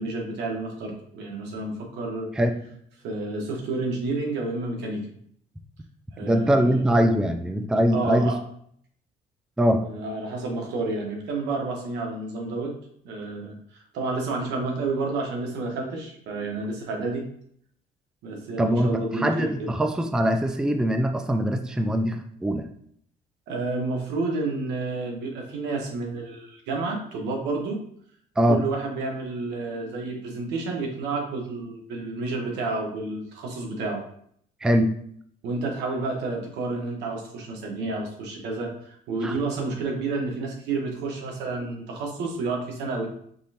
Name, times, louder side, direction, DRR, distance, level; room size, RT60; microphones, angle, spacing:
voice 1, 0.0-2.3 3.0-5.0 6.2-6.9 7.9-8.4 9.8-12.7 13.0-17.2 18.2-19.7 23.5-27.8 28.5-34.0 35.4-43.1, right 3 dB, 85° right, 1 dB, 1.2 m, -30 dB
voice 2, 6.2-8.3 9.6-9.8 18.6-22.7 28.4-28.6 34.6-34.9 39.2-39.3, equal, 5° right, 6 dB, 0.3 m, -22 dB
5.4 x 3.1 x 2.8 m, 0.65 s
cardioid pair, 110°, 17 cm